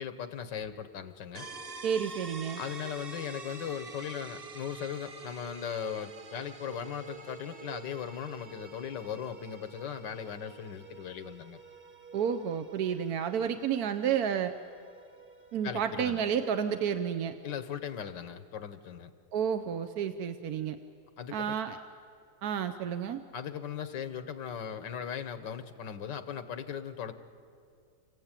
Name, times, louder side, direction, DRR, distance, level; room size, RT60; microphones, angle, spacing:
voice 1, 0.0-1.5 2.6-11.6 15.6-16.2 17.4-19.1 21.2-21.6 23.3-27.1, left 8 dB, 85° left, 10 dB, 1.8 m, -38 dB
sound 1, 1.4-16.9, right 3 dB, 35° right, 1.2 m, -48 dB
voice 2, 1.8-2.6 12.1-14.5 15.5-17.4 19.3-20.8 21.3-21.8 22.4-23.2, right 8 dB, 65° right, 8 dB, 1.2 m, -31 dB
29.0 x 16.0 x 9.0 m, 2.4 s
omnidirectional pair, 1.9 m